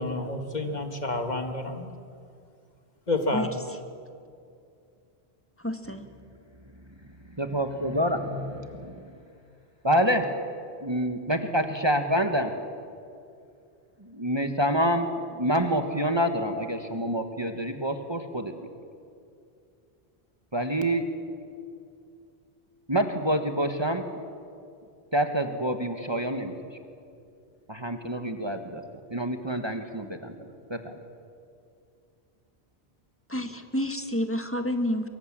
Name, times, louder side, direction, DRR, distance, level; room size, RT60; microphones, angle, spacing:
voice 1, 0.0-1.9 3.1-3.5, left 2 dB, 40° left, 5 dB, 1.7 m, -29 dB
voice 2, 5.6-6.0 33.3-35.1, left 1 dB, 10° left, 6 dB, 1.7 m, -29 dB
voice 3, 7.4-8.9 9.8-10.2 10.8-12.5 14.1-18.7 20.5-21.0 22.9-24.1 25.1-26.5 27.7-28.8 29.1-30.3 30.7-31.0, equal, 25° right, 6 dB, 1.4 m, -27 dB
24.5 x 23.5 x 7.5 m, 2.5 s
omnidirectional pair, 1.1 m